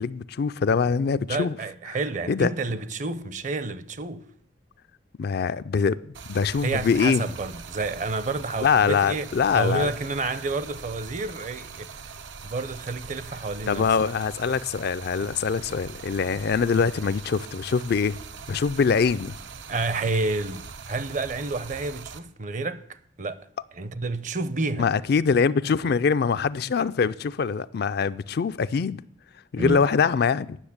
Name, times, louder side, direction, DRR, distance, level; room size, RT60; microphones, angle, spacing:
voice 1, 0.0-1.6 2.3-2.5 5.2-7.2 8.6-9.9 13.7-18.2 18.5-19.3 24.8-29.0 29.5-30.6, left 5 dB, 60° left, 0.4 m, -23 dB
voice 2, 1.3-4.3 6.6-9.3 9.5-11.9 12.4-13.8 19.7-22.8 23.2-23.5 23.8-24.9 29.6-29.9, right 3 dB, 45° right, 0.6 m, -29 dB
Stream, 6.1-22.2, right 5 dB, 90° right, 0.8 m, -42 dB
10.0 x 6.4 x 8.6 m
head